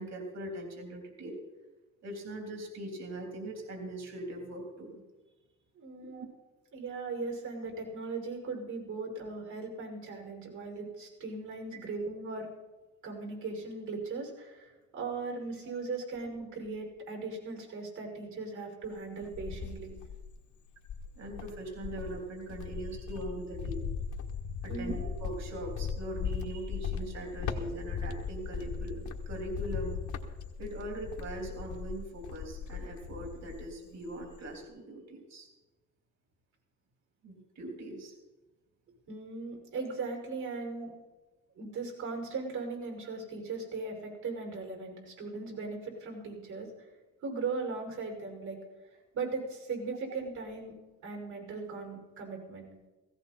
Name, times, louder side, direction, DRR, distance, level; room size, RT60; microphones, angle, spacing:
voice 1, 0.0-1.4 2.0-5.0 6.0-6.3 21.2-23.8 24.6-30.0 30.6-35.5 37.2-38.1, right 1 dB, 60° right, 2 dB, 3.5 m, -41 dB
voice 2, 5.8-6.3 6.7-12.5 13.0-19.9 24.7-24.9 39.1-40.9 41.6-46.7 47.2-48.6 49.1-50.7 51.0-52.7, right 4 dB, 75° right, 1 dB, 5.9 m, -38 dB
Cricket, 18.8-20.4 20.8-33.8 34.1-34.6, left 6 dB, 75° left, 1.6 m, -38 dB
17.0 x 16.0 x 4.3 m, 1.2 s
cardioid pair, 90°, 30 cm